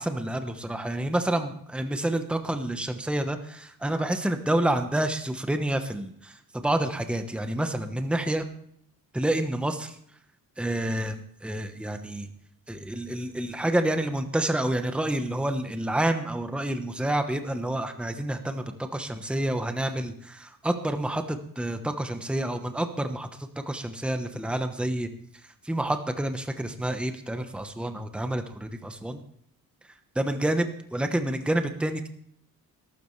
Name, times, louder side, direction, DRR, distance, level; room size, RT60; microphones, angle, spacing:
voice 1, 0.0-8.5 9.1-10.0 10.6-12.3 12.7-25.1 25.6-29.2 30.1-32.1, right 1 dB, 5° right, 7 dB, 1.0 m, -28 dB
21.5 x 12.5 x 3.2 m, 0.68 s
wide cardioid pair, 150°, 37 cm